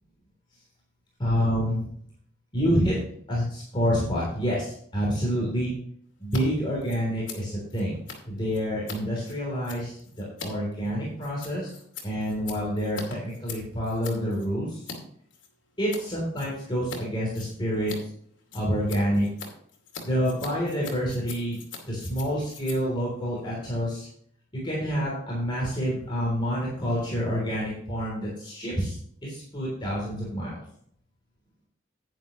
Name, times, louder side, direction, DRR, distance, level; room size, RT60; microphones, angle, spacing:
voice 1, 1.2-1.9 2.5-3.0 3.3-5.7 6.2-8.0 8.3-11.7 12.0-14.8 15.8-17.9 18.5-19.3 20.0-21.6 21.8-24.1 24.5-28.9 29.2-30.6, equal, 25° left, -5 dB, 3.3 m, -28 dB
Scissors, 6.2-6.4 6.7-15.0 15.3-16.0 16.3-17.0 17.3-24.1, left 5 dB, 70° left, 2.6 m, -43 dB
10.5 x 9.4 x 3.1 m, 0.64 s
head